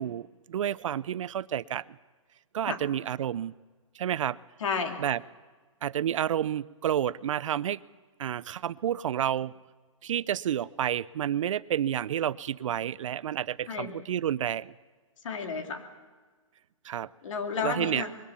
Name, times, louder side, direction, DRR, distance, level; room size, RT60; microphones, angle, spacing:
voice 1, 0.0-1.8 2.5-3.5 4.0-4.4 5.0-5.2 5.8-7.8 8.2-9.5 10.0-14.7 16.8-17.1 17.6-18.1, right 10 dB, 65° right, 20 dB, 0.5 m, -30 dB
voice 2, 4.6-5.0 13.7-13.9 15.2-15.8 17.2-18.1, left 5 dB, 65° left, 4 dB, 2.9 m, -31 dB
22.0 x 18.0 x 7.1 m, 1.4 s
hypercardioid pair, 145°, 17 cm